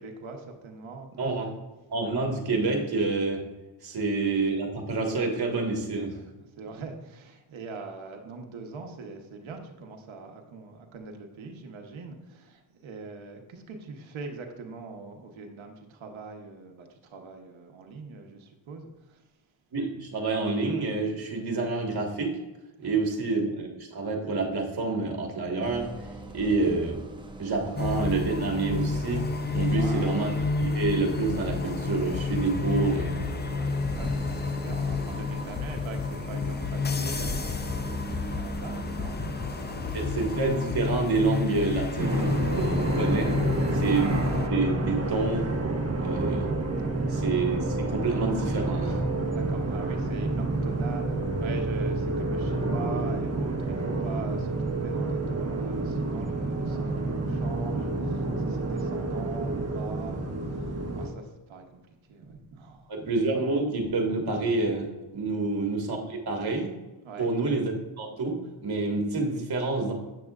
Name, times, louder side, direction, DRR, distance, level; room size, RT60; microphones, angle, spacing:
voice 1, 0.0-1.1 3.9-4.0 6.1-6.2 6.6-19.2 22.8-23.0 26.3-26.4 29.6-30.3 33.5-39.4 43.6-43.8 49.3-61.8 62.1-62.9 65.3-65.5 67.0-67.3, right 4 dB, 80° right, 3 dB, 1.1 m, -42 dB
voice 2, 1.2-1.5 1.9-3.4 3.8-6.2 19.7-22.4 22.8-25.9 26.3-27.0 27.4-33.2 39.9-43.4 43.7-45.6 46.0-46.5 47.1-49.0 62.9-64.9 65.1-66.7 67.2-69.9, right 3 dB, 55° right, 1 dB, 1.6 m, -28 dB
Bus, 25.6-41.2, right 2 dB, 10° right, 0.8 m, -40 dB
sound 1, 27.8-44.5, left 4 dB, 20° left, 0.6 m, -30 dB
sound 2, 42.0-61.1, right 2 dB, 30° right, 1.3 m, -29 dB
8.6 x 6.3 x 2.4 m, 1.1 s
cardioid pair, 85°, 47 cm